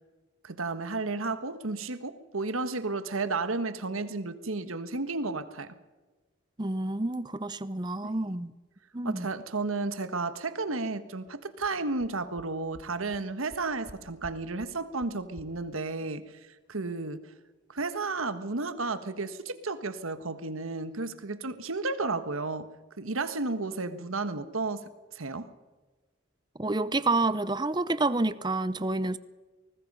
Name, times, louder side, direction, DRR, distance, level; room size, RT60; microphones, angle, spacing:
voice 1, 0.4-5.8 8.0-8.4 9.0-16.2 16.7-17.2 17.7-22.7 23.0-25.5, right 3 dB, 90° right, 1.4 m, -33 dB
voice 2, 6.6-8.5 8.9-9.3 26.6-29.2, right 2 dB, 20° right, 0.7 m, -28 dB
sound 1, 11.3-11.4 11.6-11.7 12.0-12.1 12.4-12.5 12.7-12.8 13.1-13.2 13.5-13.9 14.2-14.3 14.6-14.7 15.0-15.1 15.4-15.5, equal, 90° left, 4.8 m, -48 dB
24.0 x 19.5 x 5.5 m
head